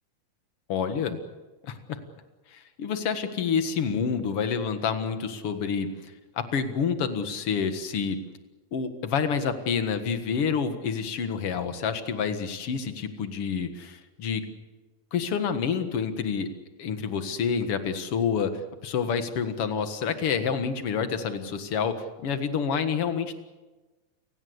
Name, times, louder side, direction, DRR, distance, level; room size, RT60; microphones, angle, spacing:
voice 1, 0.7-1.2 1.6-2.0 2.5-5.9 6.4-8.2 8.7-14.4 15.1-16.5 16.8-18.5 18.8-23.3, left 6 dB, 50° left, 9 dB, 2.1 m, -28 dB
29.5 x 17.5 x 8.0 m, 1.2 s
omnidirectional pair, 4.0 m